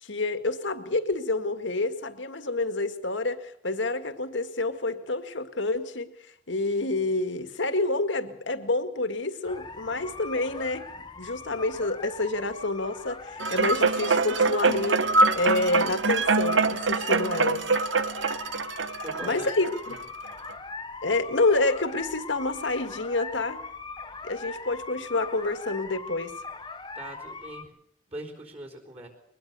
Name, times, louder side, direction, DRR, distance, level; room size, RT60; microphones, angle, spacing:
voice 1, 0.0-6.1 6.5-10.9 11.2-15.1 15.4-17.7 19.2-20.0 21.0-23.6 24.2-26.4, left 2 dB, 75° left, 1.9 m, -28 dB
sound 1, 9.4-27.6, left 4 dB, 25° left, 1.0 m, -41 dB
sound 2, 13.4-20.0 20.5-20.6, right 3 dB, 80° right, 1.0 m, -24 dB
voice 2, 19.0-19.5 19.9-20.0 26.9-27.8 28.1-29.1, right 1 dB, 30° right, 4.1 m, -41 dB
23.0 x 20.0 x 6.9 m
head